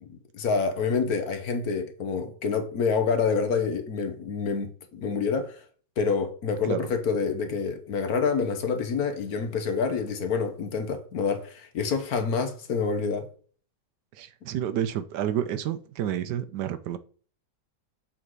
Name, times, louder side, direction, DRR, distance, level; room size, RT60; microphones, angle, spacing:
voice 1, 0.0-5.6 6.0-13.3, left 5 dB, 60° left, 1.3 m, -27 dB
voice 2, 14.2-17.0, right 10 dB, 75° right, 1.1 m, -29 dB
7.2 x 3.9 x 4.6 m
omnidirectional pair, 2.0 m